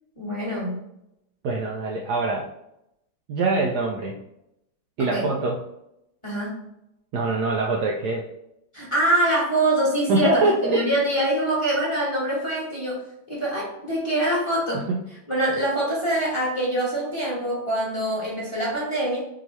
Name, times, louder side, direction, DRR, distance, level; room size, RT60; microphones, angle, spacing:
voice 1, 0.2-0.8 5.0-5.3 6.2-6.6 8.7-13.0 13.3-14.9 15.3-19.2, right 1 dB, 20° left, -6 dB, 1.1 m, -24 dB
voice 2, 1.4-2.5 3.3-4.2 5.0-5.6 7.1-8.3 10.1-10.8 14.7-15.0, right 2 dB, 90° right, 0 dB, 0.8 m, -23 dB
4.8 x 2.8 x 3.0 m, 0.82 s
omnidirectional pair, 2.3 m